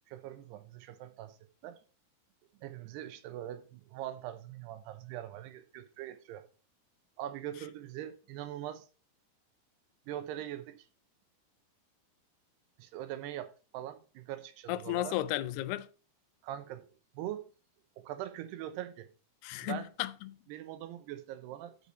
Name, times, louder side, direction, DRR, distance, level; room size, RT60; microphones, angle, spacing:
voice 1, 0.1-1.4 1.6-1.8 2.6-6.5 7.2-8.9 10.1-10.9 12.8-15.2 16.4-16.9 17.1-17.5 18.0-19.1 19.6-19.9 20.5-21.8, right 12 dB, 90° right, 3.0 m, -42 dB
voice 2, 14.7-15.9 19.4-20.4, left 15 dB, 85° left, 2.7 m, -34 dB
8.2 x 7.2 x 4.7 m
omnidirectional pair, 4.6 m